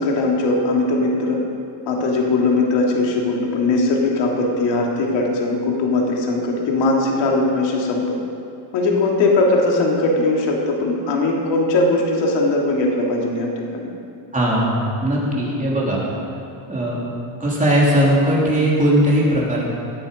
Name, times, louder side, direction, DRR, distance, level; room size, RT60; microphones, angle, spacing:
voice 1, 0.0-1.4 1.9-8.1 8.7-13.9 15.3-15.6, left 2 dB, 60° left, -1 dB, 2.8 m, -20 dB
voice 2, 14.3-14.7 15.0-16.0 16.7-17.0 17.4-19.6, right 1 dB, 15° right, -5 dB, 3.2 m, -18 dB
18.5 x 9.8 x 5.2 m, 2.5 s
cardioid pair, 145°, 47 cm